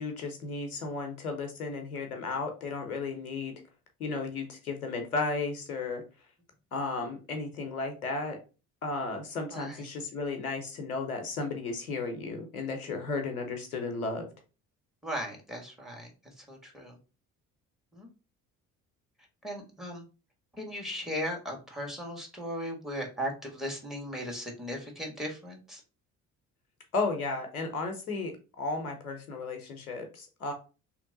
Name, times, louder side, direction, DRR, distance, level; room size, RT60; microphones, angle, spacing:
voice 1, 0.0-3.5 4.0-6.0 6.7-8.4 8.8-14.2 26.9-30.5, left 3 dB, 90° left, 5 dB, 0.9 m, -34 dB
voice 2, 9.5-9.9 15.0-16.1 16.4-16.9 17.9-18.1 19.4-20.0 20.6-25.8, equal, ahead, 1 dB, 1.6 m, -37 dB
3.1 x 2.9 x 3.9 m, 0.32 s
figure-of-eight pair, 50°, 42 cm